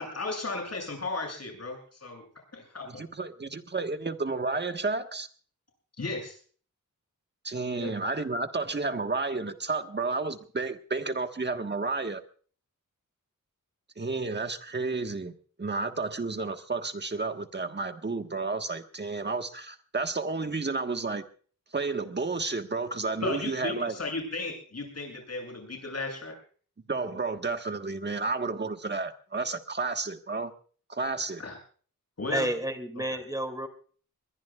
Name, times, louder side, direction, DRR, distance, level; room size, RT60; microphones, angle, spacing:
voice 1, 0.0-1.8 2.0-2.2 2.5-3.0 6.0-6.4 7.8-8.0 23.2-26.4 31.4-31.5 32.2-32.5, left 2 dB, 50° left, 1 dB, 7.5 m, -35 dB
voice 2, 2.9-5.3 7.4-12.2 14.0-21.2 21.7-23.9 26.9-30.5 30.9-31.4, right 3 dB, 35° right, 6 dB, 1.5 m, -31 dB
voice 3, 32.3-33.7, right 1 dB, 10° right, 7 dB, 2.5 m, -30 dB
22.5 x 21.0 x 2.4 m, 0.44 s
wide cardioid pair, 115°, 32 cm